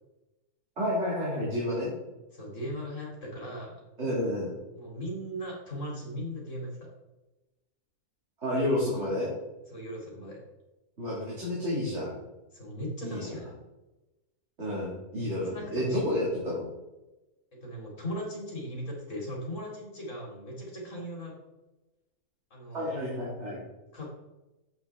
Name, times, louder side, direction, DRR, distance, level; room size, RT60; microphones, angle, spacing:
voice 1, 0.8-1.9 4.0-4.5 8.4-9.3 11.0-12.1 13.0-13.4 14.6-16.6 22.7-23.6, left 1 dB, 45° right, -6 dB, 2.6 m, -30 dB
voice 2, 2.3-3.8 4.7-6.9 9.7-10.4 12.5-13.5 15.1-16.0 17.5-21.3 22.5-23.0 23.9-24.1, equal, 50° left, -2 dB, 3.0 m, -38 dB
8.8 x 7.8 x 3.5 m, 1.0 s
omnidirectional pair, 1.7 m